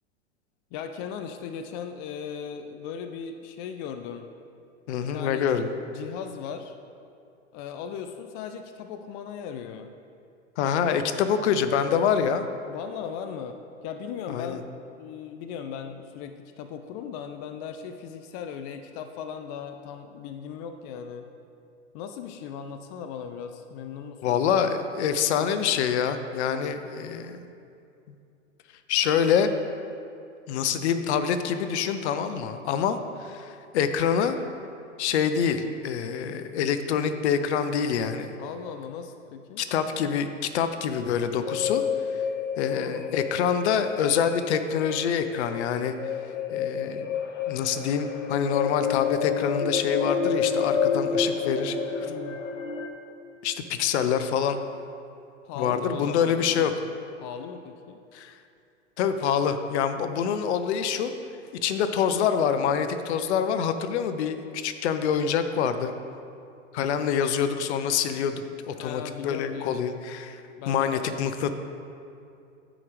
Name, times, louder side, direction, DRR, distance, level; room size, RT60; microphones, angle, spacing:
voice 1, 0.7-4.3 5.0-6.7 7.5-9.9 10.8-11.2 12.7-21.3 21.9-24.7 38.4-39.7 42.7-43.2 52.0-52.4 55.4-56.7 57.2-58.0 68.8-69.8 70.6-71.2, left 7 dB, 35° left, 7 dB, 0.4 m, -38 dB
voice 2, 4.9-5.7 10.6-12.5 14.3-14.6 24.2-27.4 28.9-29.5 30.5-34.4 35.0-38.3 39.6-41.8 42.6-45.9 46.5-47.1 47.5-52.1 53.4-54.6 55.6-56.7 58.1-58.3 59.0-61.1 61.6-65.9 66.7-71.5, left 7 dB, 60° left, 9 dB, 0.7 m, -26 dB
sound 1, 41.4-52.9, left 6 dB, 90° left, 0.9 m, -29 dB
13.5 x 5.0 x 3.2 m, 2.5 s
hypercardioid pair, 110°, 37 cm